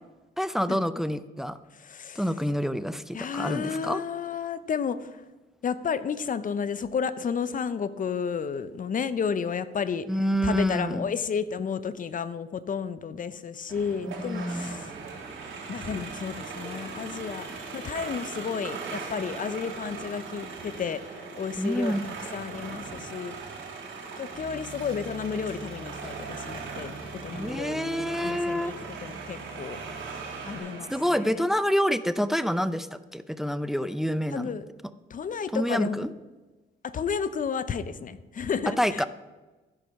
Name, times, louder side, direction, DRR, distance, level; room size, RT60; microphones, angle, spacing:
voice 1, 0.4-1.6 2.2-4.0 10.1-11.0 14.2-14.7 21.6-22.1 27.3-28.7 30.9-32.9 33.1-34.5 35.5-36.1 38.8-39.1, equal, ahead, 13 dB, 0.5 m, -27 dB
voice 2, 1.7-2.3 3.1-5.2 5.6-14.9 15.7-23.3 24.2-26.9 27.2-28.7 29.0-29.8 30.4-31.4 34.3-34.7 35.1-36.1 36.8-39.1, left 6 dB, 40° left, 14 dB, 0.7 m, -32 dB
sound 1, 13.7-31.3, right 4 dB, 80° right, 3.5 m, -39 dB
Bass guitar, 24.3-30.6, equal, 75° left, 3.3 m, -47 dB
13.5 x 5.2 x 5.9 m, 1.2 s
cardioid pair, 90°, 20 cm